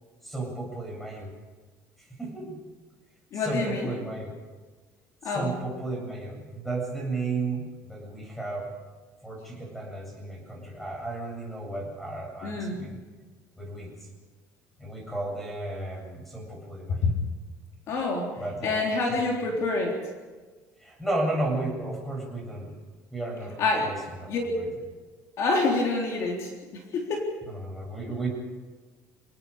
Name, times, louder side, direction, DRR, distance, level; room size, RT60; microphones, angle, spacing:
voice 1, 0.2-1.3 2.0-2.6 3.3-4.3 5.2-8.7 9.2-13.0 13.6-14.1 14.8-17.1 18.4-18.8 19.1-19.2 20.8-22.7 23.1-23.5 23.8-24.7 27.5-28.3, right 2 dB, ahead, 0 dB, 7.9 m, -33 dB
voice 2, 3.3-3.9 5.2-5.5 12.4-12.8 17.1-17.2 17.9-18.3 18.6-20.0 23.6-23.9 24.3-24.5 25.4-27.3, left 3 dB, 50° left, 0 dB, 3.9 m, -27 dB
29.0 x 19.0 x 5.1 m, 1.4 s
cardioid pair, 155°, 6 cm